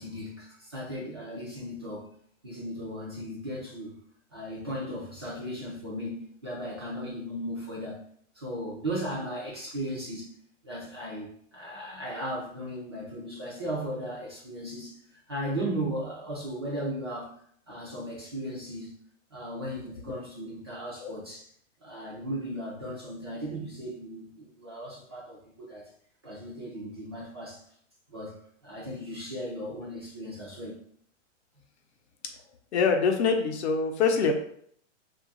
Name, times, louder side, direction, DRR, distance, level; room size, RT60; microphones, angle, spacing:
voice 1, 0.0-2.1 2.4-4.0 4.3-8.0 8.3-10.3 10.6-15.0 15.3-17.4 17.7-19.0 19.3-21.5 21.8-25.9 26.2-27.6 28.1-28.3 28.6-30.8, equal, 20° right, -7 dB, 0.3 m, -36 dB
voice 2, 32.7-34.3, left 5 dB, 60° left, 4 dB, 0.7 m, -25 dB
2.8 x 2.4 x 3.8 m, 0.65 s
hypercardioid pair, 160°, 38 cm